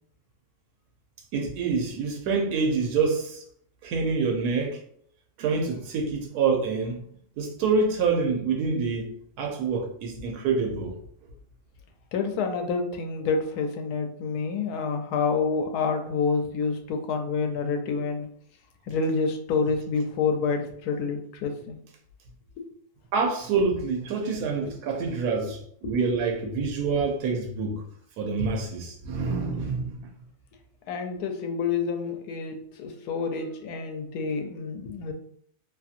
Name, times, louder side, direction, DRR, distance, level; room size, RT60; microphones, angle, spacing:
voice 1, 1.3-3.4 3.8-4.8 5.4-7.0 7.4-11.0 23.1-27.8 28.2-30.1, right 4 dB, 90° right, 1.1 m, -26 dB
voice 2, 12.1-18.3 18.9-21.8 24.6-24.7 30.9-35.1, left 5 dB, 85° left, 1.1 m, -28 dB
2.8 x 2.6 x 2.4 m
omnidirectional pair, 1.6 m